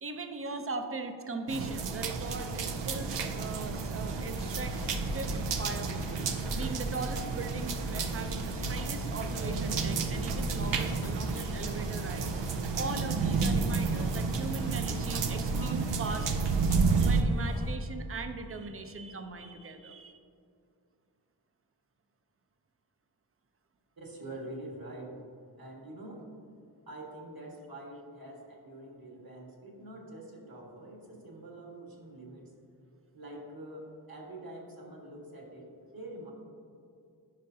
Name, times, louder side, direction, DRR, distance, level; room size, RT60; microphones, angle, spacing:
voice 1, 0.0-4.8 5.1-16.3 17.0-20.2, right 3 dB, 30° right, 7 dB, 0.7 m, -39 dB
sound 1, 1.5-17.2, right 4 dB, 75° right, 0.7 m, -31 dB
sound 2, 4.3-12.1, left 2 dB, 10° left, 0.3 m, -42 dB
Breakfast in the street, 9.1-17.8, left 4 dB, 55° left, 0.6 m, -48 dB
voice 2, 24.0-25.1 25.6-26.2 26.9-32.5 33.1-36.3, right 1 dB, 50° right, -1 dB, 1.7 m, -45 dB
11.5 x 5.2 x 2.8 m, 2.5 s
cardioid pair, 50°, 44 cm